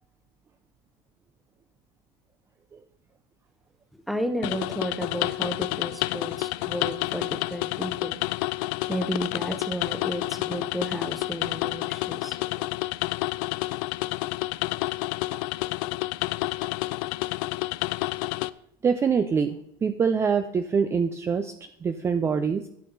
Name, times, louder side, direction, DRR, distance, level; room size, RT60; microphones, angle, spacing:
voice 1, 4.1-8.2 8.9-12.6, equal, ahead, 8 dB, 1.0 m, -32 dB
sound 1, 4.4-18.5, left 20 dB, 70° left, 0.4 m, -29 dB
voice 2, 18.8-22.7, right 6 dB, 20° right, 9 dB, 0.5 m, -25 dB
12.5 x 6.6 x 4.0 m, 0.73 s
supercardioid pair, 135°, 12 cm